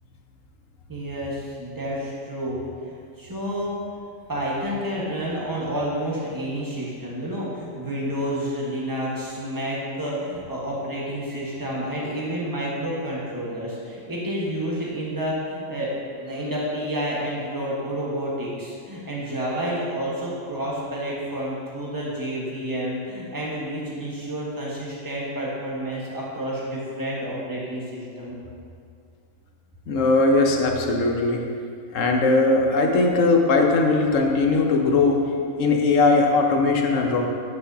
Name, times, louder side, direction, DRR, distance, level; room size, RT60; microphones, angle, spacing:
voice 1, 0.9-3.7 4.3-15.9 16.2-28.3, equal, 15° right, -5 dB, 1.3 m, -29 dB
voice 2, 29.9-31.4 31.9-35.2 35.6-37.3, left 3 dB, 70° left, 2 dB, 1.1 m, -19 dB
8.6 x 7.6 x 2.8 m, 2.3 s
omnidirectional pair, 1.4 m